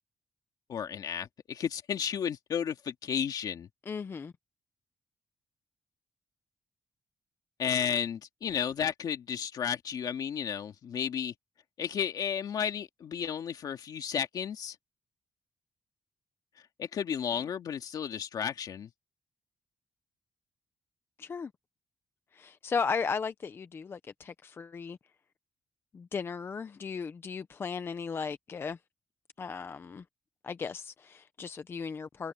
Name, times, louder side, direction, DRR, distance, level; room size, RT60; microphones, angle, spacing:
voice 1, 0.7-3.7 7.6-11.3 11.8-14.8 16.8-18.9, left 8 dB, 55° left, 2.0 m, -33 dB
voice 2, 3.9-4.3 21.2-21.5 22.3-25.0 25.9-28.8 29.4-30.0 30.4-32.3, left 5 dB, 30° left, 0.6 m, -36 dB
wide cardioid pair, 165°, 8 cm